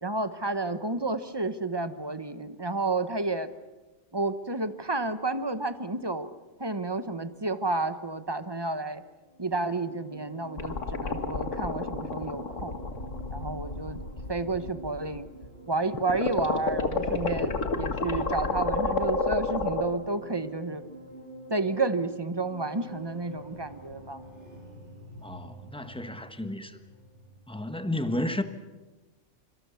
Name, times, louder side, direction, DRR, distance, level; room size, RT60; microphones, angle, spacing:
voice 1, 0.0-3.5 4.1-6.3 6.6-9.0 9.4-12.8 13.3-14.0 14.3-15.3 15.7-20.8 21.5-24.2, right 3 dB, 20° right, 1.1 m, -31 dB
sound 1, 9.2-27.7, right 1 dB, 70° right, 5.5 m, -47 dB
sound 2, 10.6-15.6 16.0-19.8, left 3 dB, 85° left, 2.1 m, -30 dB
voice 2, 25.2-26.8 27.5-28.4, left 1 dB, 5° left, 1.3 m, -32 dB
25.5 x 24.5 x 7.1 m
omnidirectional pair, 1.2 m